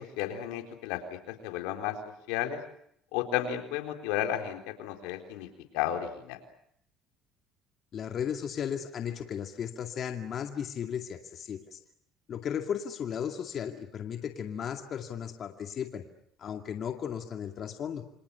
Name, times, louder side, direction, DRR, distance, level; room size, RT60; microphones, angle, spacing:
voice 1, 0.0-2.0 2.3-2.6 3.1-5.5 5.7-6.4, left 11 dB, 90° left, 4 dB, 4.1 m, -33 dB
voice 2, 7.9-11.8 12.3-16.1 16.4-18.0, left 8 dB, 50° left, 4 dB, 2.2 m, -35 dB
29.0 x 26.0 x 7.0 m, 0.72 s
supercardioid pair, 90°, 0 cm